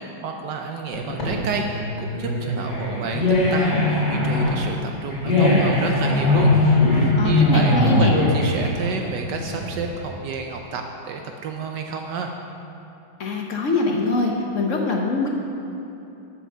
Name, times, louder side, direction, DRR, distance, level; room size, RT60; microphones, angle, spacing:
voice 1, 0.0-6.5 6.9-12.3, right 5 dB, 70° right, 3 dB, 1.2 m, -30 dB
sound 1, 0.9-10.0, left 2 dB, 35° left, 2.9 m, -20 dB
voice 2, 7.2-8.2 13.2-15.3, left 3 dB, 55° left, 0 dB, 0.9 m, -23 dB
7.8 x 7.1 x 6.6 m, 3.0 s
omnidirectional pair, 2.1 m